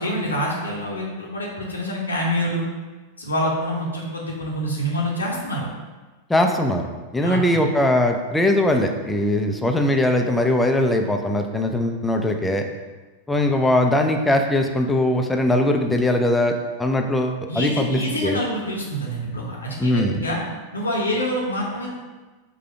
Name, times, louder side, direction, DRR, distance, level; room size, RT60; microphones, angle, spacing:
voice 1, 0.0-2.7 3.2-5.7 7.2-7.6 17.5-20.4 20.7-21.9, equal, 80° left, -4 dB, 0.8 m, -26 dB
voice 2, 6.3-6.8 7.1-12.7 13.3-18.4 19.8-20.2, left 1 dB, 5° left, 4 dB, 0.4 m, -20 dB
4.9 x 2.2 x 4.6 m, 1.2 s
figure-of-eight pair, 90°, 0 cm